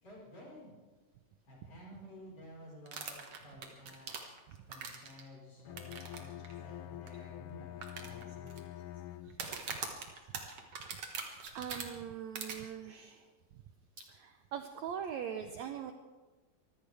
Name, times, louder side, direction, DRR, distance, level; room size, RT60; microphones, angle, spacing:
voice 1, 0.0-0.8 1.5-4.1 4.7-8.6, equal, 45° left, -4 dB, 5.8 m, -53 dB
sound 1, 2.9-5.2 5.8-6.2 6.4-6.5 7.1-7.2 7.8-8.6 9.3-11.8 12.3-12.5, right 6 dB, 50° right, 2.4 m, -41 dB
Bowed string instrument, 5.6-9.7, left 13 dB, 80° left, 2.2 m, -46 dB
voice 2, 11.5-13.3 13.5-13.6 14.0-15.9, right 8 dB, 75° right, 6 dB, 1.7 m, -42 dB
24.5 x 15.0 x 3.5 m, 1.3 s
omnidirectional pair, 3.9 m